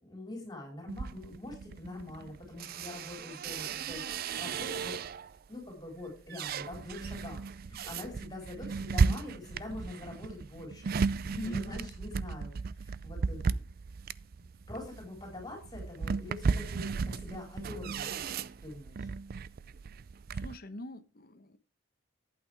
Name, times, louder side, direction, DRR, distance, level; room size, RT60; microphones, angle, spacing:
voice 1, 0.0-12.5 12.8-13.4 14.7-18.1 18.6-19.1, left 2 dB, 20° left, 4.4 m, -45 dB
sound 1, 0.9-5.4 5.8-20.6, right 5 dB, 45° right, 0.4 m, -35 dB
voice 2, 11.3-11.9 20.3-21.6, left 1 dB, 50° left, 1.0 m, -42 dB
11.5 x 8.7 x 3.5 m
head